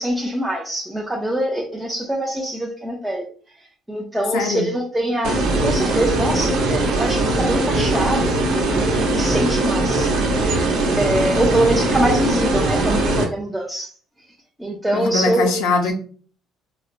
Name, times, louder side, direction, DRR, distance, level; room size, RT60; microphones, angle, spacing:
voice 1, 0.0-3.2 3.9-10.7 11.0-13.9 14.6-15.5 15.8-15.9, right 1 dB, 5° right, -2 dB, 0.5 m, -24 dB
voice 2, 4.3-4.7 14.9-15.9, left 3 dB, 85° left, 5 dB, 0.7 m, -21 dB
sound 1, 5.2-13.2, right 2 dB, 80° right, 0.9 m, -20 dB
4.0 x 2.1 x 2.5 m, 0.44 s
cardioid pair, 115°, 0 cm